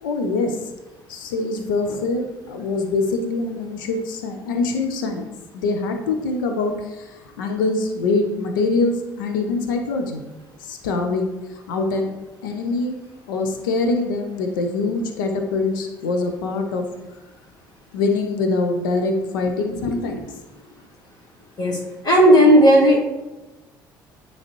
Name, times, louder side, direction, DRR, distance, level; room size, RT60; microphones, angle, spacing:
voice 1, 0.0-0.6 1.1-5.3 5.5-7.1 7.4-10.2 10.7-11.3 11.7-12.1 12.4-13.0 13.3-16.9 17.9-20.3, left 3 dB, 80° left, 5 dB, 0.7 m, -24 dB
voice 2, 22.0-23.0, equal, 40° left, -2 dB, 1.8 m, -13 dB
9.7 x 3.2 x 3.0 m, 1.1 s
hypercardioid pair, 55°, 11 cm